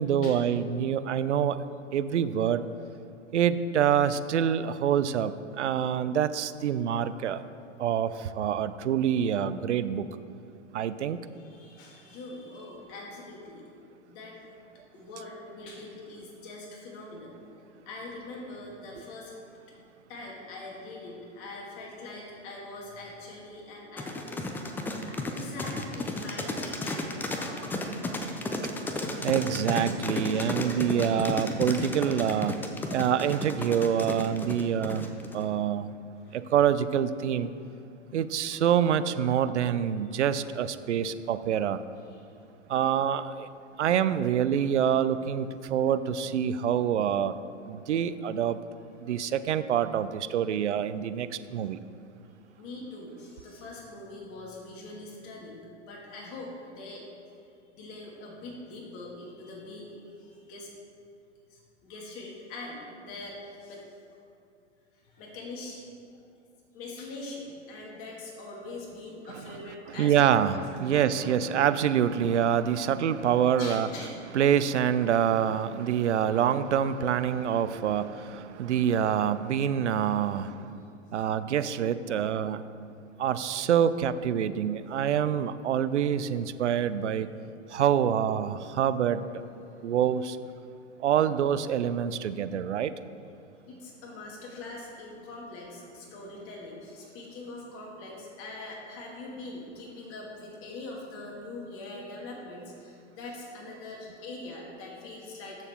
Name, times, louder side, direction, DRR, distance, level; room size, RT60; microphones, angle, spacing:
voice 1, 0.0-1.6 1.9-2.6 3.3-7.4 7.8-10.1 10.7-11.2 29.2-32.6 32.9-35.9 36.3-37.5 38.1-41.8 42.7-43.5 43.8-47.4 47.6-48.6 49.0-51.8 70.0-73.9 74.3-80.7 81.1-82.6 83.2-87.3 87.7-89.4 89.8-90.4 91.0-92.9, right 9 dB, 70° right, 13 dB, 0.6 m, -26 dB
voice 2, 11.3-13.6 14.1-14.4 14.9-17.4 17.9-19.3 20.1-27.6 28.4-28.6 30.3-30.8 36.2-36.4 40.0-40.1 42.1-42.2 49.1-49.2 52.6-57.0 57.7-60.7 61.5-64.0 65.0-66.2 66.7-71.5 73.6-74.1 78.2-78.6 81.9-82.2 85.0-85.1 89.2-89.9 90.9-91.1 92.5-92.6 93.6-105.6, left 2 dB, 35° left, -2 dB, 2.4 m, -43 dB
sound 1, 24.0-35.4, left 2 dB, 5° left, 0.4 m, -33 dB
13.5 x 6.6 x 3.7 m, 2.5 s
figure-of-eight pair, 105°, 36 cm